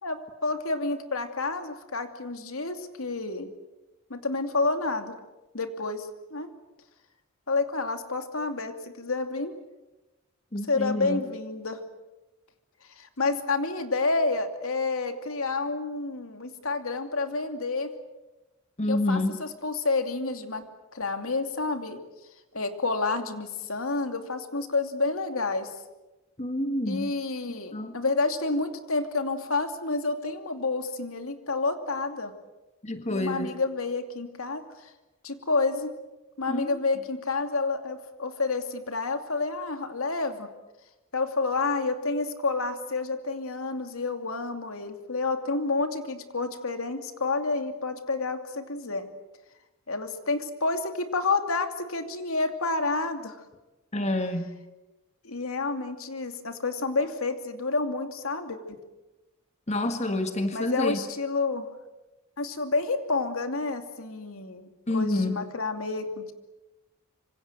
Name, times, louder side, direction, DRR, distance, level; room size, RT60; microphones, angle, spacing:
voice 1, 0.0-3.5 4.1-5.1 5.5-6.5 7.5-9.5 10.7-11.8 13.0-17.9 18.9-20.6 20.9-22.0 22.5-25.7 26.8-32.3 33.1-34.9 35.2-35.9 36.4-40.5 41.1-49.1 49.9-53.4 55.2-58.8 60.5-61.7 62.4-66.3, left 3 dB, 80° left, 7 dB, 2.7 m, -29 dB
voice 2, 10.5-11.2 18.8-19.4 26.4-27.1 27.7-27.9 32.8-33.5 36.5-36.8 53.9-54.5 59.7-61.0 64.9-65.3, left 1 dB, 30° left, 7 dB, 1.8 m, -28 dB
26.0 x 26.0 x 7.8 m, 1.0 s
head